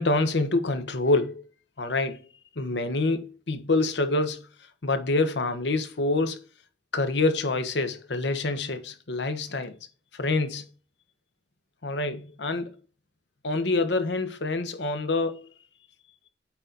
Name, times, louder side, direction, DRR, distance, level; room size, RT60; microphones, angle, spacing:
voice 1, 0.0-1.4 1.8-2.2 2.6-4.5 4.8-6.5 6.9-9.7 10.1-10.7 11.8-12.7 13.4-15.5, left 2 dB, 80° left, 1.1 m, -26 dB
8.8 x 3.9 x 4.0 m
head